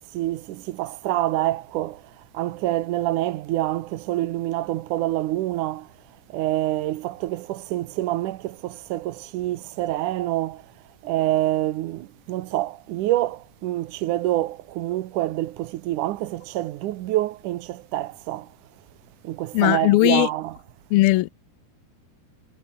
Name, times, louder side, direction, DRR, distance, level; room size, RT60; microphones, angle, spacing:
voice 1, 0.1-5.9 6.3-10.6 11.0-18.5 19.2-20.6, right 15 dB, 70° right, 2.0 m, -26 dB
voice 2, 19.5-20.3 20.9-21.3, left 19 dB, 80° left, 2.5 m, -18 dB
omnidirectional pair, 4.5 m